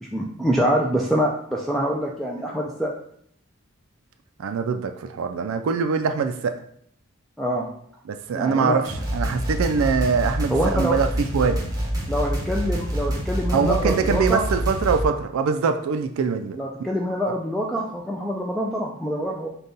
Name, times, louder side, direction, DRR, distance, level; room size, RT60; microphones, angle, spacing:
voice 1, 0.0-2.9 7.4-7.7 8.3-8.8 10.5-11.0 12.1-14.4 16.5-19.5, equal, ahead, -2 dB, 0.3 m, -25 dB
voice 2, 4.4-6.5 8.1-11.1 11.3-11.6 13.5-16.6 17.3-17.4, right 5 dB, 80° right, 7 dB, 0.3 m, -23 dB
sound 1, 8.8-15.0, equal, 15° right, 0.9 m, -27 dB
5.1 x 2.3 x 3.9 m, 0.66 s
head